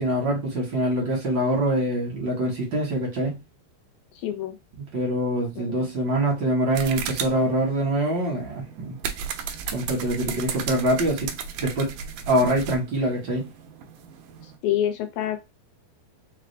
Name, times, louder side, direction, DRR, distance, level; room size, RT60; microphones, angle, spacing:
voice 1, 0.0-3.4 4.9-9.0 9.7-11.3 11.6-11.9 12.3-13.5, right 1 dB, 60° right, 1.2 m, -24 dB
voice 2, 4.1-4.6 5.6-5.9 14.4-15.4, left 11 dB, 80° left, 2.3 m, -27 dB
sound 1, 6.7-14.6, right 7 dB, 80° right, 1.8 m, -35 dB
5.9 x 2.3 x 3.3 m
omnidirectional pair, 4.3 m